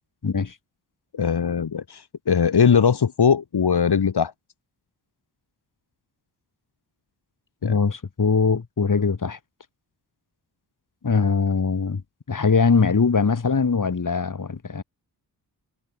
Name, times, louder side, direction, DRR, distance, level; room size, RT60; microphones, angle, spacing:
voice 1, 0.2-0.6 7.6-9.4 11.0-12.0 12.3-14.8, left 5 dB, 45° left, 3.5 m, -21 dB
voice 2, 1.1-4.3 7.6-7.8, left 7 dB, 65° left, 3.2 m, -20 dB
supercardioid pair, 45°, 43 cm